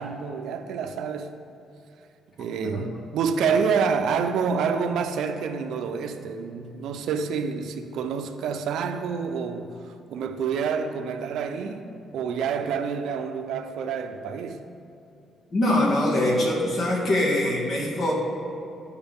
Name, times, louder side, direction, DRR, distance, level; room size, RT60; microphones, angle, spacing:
voice 1, 0.0-1.4 2.4-14.6, right 6 dB, 80° right, 0.5 m, -28 dB
voice 2, 15.5-18.1, left 1 dB, 45° left, 2.0 m, -23 dB
12.5 x 4.8 x 3.6 m
cardioid pair, 90°, 0 cm